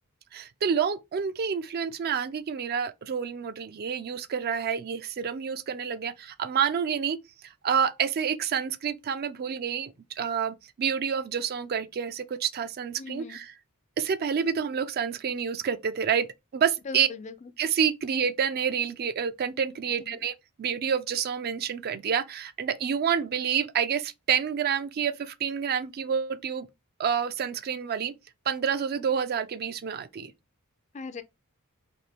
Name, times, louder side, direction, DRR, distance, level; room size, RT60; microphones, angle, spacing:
voice 1, 0.3-7.2 7.4-13.5 14.0-16.3 16.5-17.1 17.6-26.7 27.0-28.1 28.5-30.3, right 7 dB, 45° right, 0.4 m, -28 dB
voice 2, 13.0-13.4 16.9-17.5 20.1-20.2 30.9-31.2, left 4 dB, 30° left, 0.4 m, -39 dB
4.2 x 2.5 x 3.4 m
head